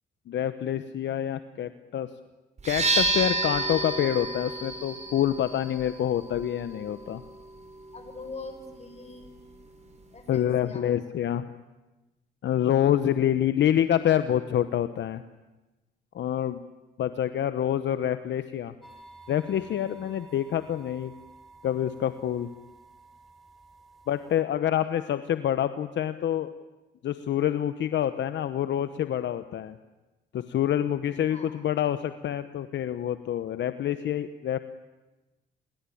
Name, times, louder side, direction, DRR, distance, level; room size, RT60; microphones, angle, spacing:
voice 1, 0.3-2.1 2.6-7.2 10.3-11.5 12.4-15.2 16.1-16.6 17.0-18.7 19.3-21.1 21.6-22.5 24.1-26.5 27.0-29.8 30.3-34.6, left 10 dB, 65° left, 11 dB, 1.0 m, -27 dB
sound 1, 2.6-10.3, right 2 dB, 35° right, 4.7 m, -32 dB
voice 2, 7.9-9.3 10.1-10.9 31.2-31.6, left 3 dB, 35° left, 7 dB, 5.9 m, -43 dB
sound 2, 18.8-24.4, right 3 dB, ahead, 5.5 m, -52 dB
28.0 x 22.5 x 8.6 m, 1.1 s
cardioid pair, 90°, 20 cm